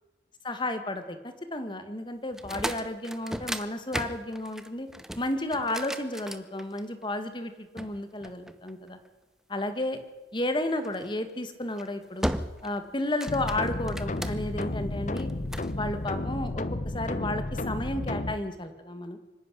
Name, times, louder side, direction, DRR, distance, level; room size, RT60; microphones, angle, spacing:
voice 1, 0.4-4.9 5.2-9.0 9.5-10.0 10.3-12.3 12.6-15.3 15.7-16.6 16.9-19.2, left 1 dB, 25° left, 9 dB, 1.7 m, -32 dB
sound 1, 2.3-7.0 7.8-9.1 10.8-11.1 11.6-11.9 12.2-12.8 13.1-14.6 15.2-15.7, equal, 5° right, 0.8 m, -36 dB
sound 2, 13.3-18.3, left 2 dB, 40° left, 0.9 m, -32 dB
24.5 x 11.0 x 10.0 m, 1.2 s
head